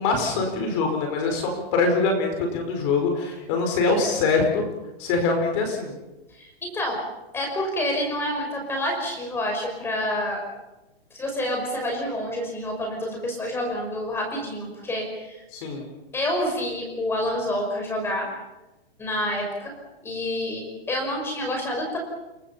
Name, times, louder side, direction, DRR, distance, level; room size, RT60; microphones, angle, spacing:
voice 1, 0.0-4.6 5.0-5.9 15.5-15.8, left 3 dB, 25° left, 4 dB, 5.0 m, -23 dB
voice 2, 6.3-7.0 7.3-10.4 11.1-15.4 16.1-18.3 19.0-19.7 20.0-22.0, left 1 dB, 5° left, 1 dB, 5.5 m, -28 dB
29.5 x 23.0 x 5.7 m, 1.0 s
hypercardioid pair, 175°, 31 cm